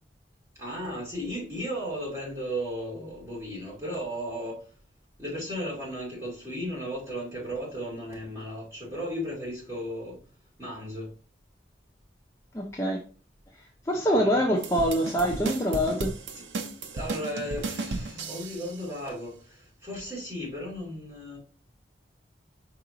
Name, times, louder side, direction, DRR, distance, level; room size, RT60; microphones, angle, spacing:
voice 1, 0.6-4.7 5.2-10.2 10.6-11.1 14.1-14.4 16.3-16.4 16.9-21.4, equal, 15° right, 2.4 m, -35 dB
voice 2, 12.5-13.0 13.9-16.1, equal, 15° left, 0.5 m, -25 dB
sound 1, 14.6-18.8, right 3 dB, 90° right, 0.6 m, -35 dB
4.8 x 2.9 x 3.8 m
head